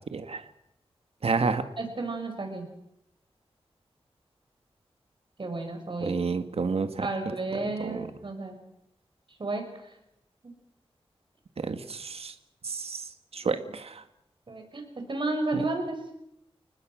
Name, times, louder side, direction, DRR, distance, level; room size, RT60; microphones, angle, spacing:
voice 1, 0.1-0.4 1.2-1.6 6.0-7.1 7.8-8.1 11.6-12.3 12.6-13.0 13.3-14.0 15.5-15.6, right 4 dB, 75° right, 9 dB, 1.8 m, -30 dB
voice 2, 1.8-2.7 5.4-6.2 7.0-8.5 9.4-9.6 14.5-14.8 15.1-16.0, right 2 dB, 55° right, 5 dB, 6.1 m, -32 dB
30.0 x 19.5 x 6.3 m, 0.81 s
wide cardioid pair, 105°, 10 cm